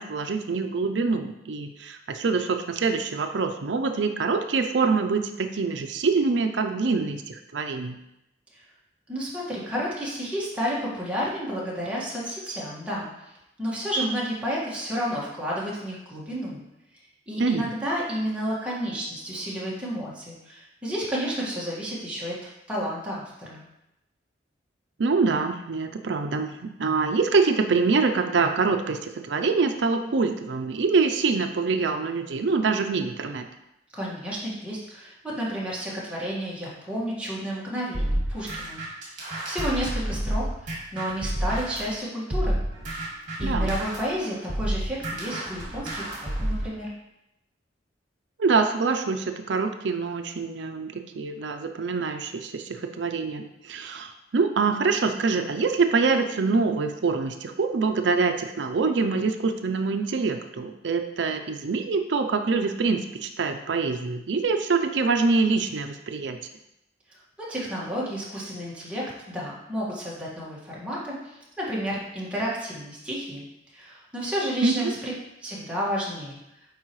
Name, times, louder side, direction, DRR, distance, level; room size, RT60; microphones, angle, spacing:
voice 1, 0.0-8.0 17.4-17.7 25.0-33.5 43.4-43.7 48.4-66.4 74.6-75.0, right 4 dB, 70° right, 6 dB, 0.5 m, -25 dB
voice 2, 9.1-13.1 13.6-16.6 17.3-22.4 22.7-23.6 33.9-42.6 43.4-46.9 67.1-73.5 73.7-75.1 75.4-76.4, equal, 5° right, -6 dB, 1.7 m, -31 dB
sound 1, 37.9-41.9 42.3-46.7, right 1 dB, 45° right, 2.1 m, -29 dB
8.2 x 4.8 x 3.1 m, 0.87 s
head